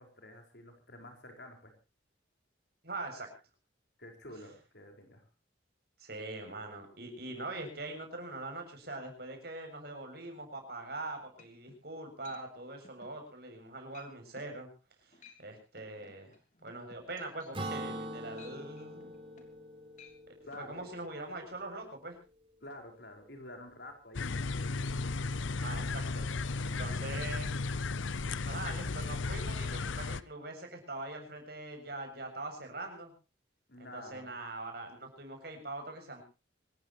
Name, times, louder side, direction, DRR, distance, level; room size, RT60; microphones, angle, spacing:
voice 1, 0.0-1.7 4.0-5.2 20.4-20.9 22.6-24.4 33.7-34.3, left 1 dB, 60° left, 4 dB, 5.2 m, -49 dB
voice 2, 2.8-3.3 6.0-14.7 15.0-16.3 16.6-19.2 20.6-22.2 25.5-27.6 28.4-33.1 33.8-36.2, right 2 dB, 55° right, 4 dB, 7.4 m, -43 dB
sound 1, 11.0-11.1 11.4-11.8 12.2-12.4 12.8-13.2 13.5-13.7 13.9-14.1 14.4-14.6 15.0-15.4 15.8-19.7 19.9-20.2 20.5-20.7, left 4 dB, 40° left, 3.2 m, -57 dB
Acoustic guitar / Strum, 17.5-21.2, right 1 dB, 30° right, 4.0 m, -42 dB
sound 2, 24.1-30.2, left 3 dB, 80° left, 0.7 m, -35 dB
26.0 x 14.5 x 3.1 m, 0.33 s
head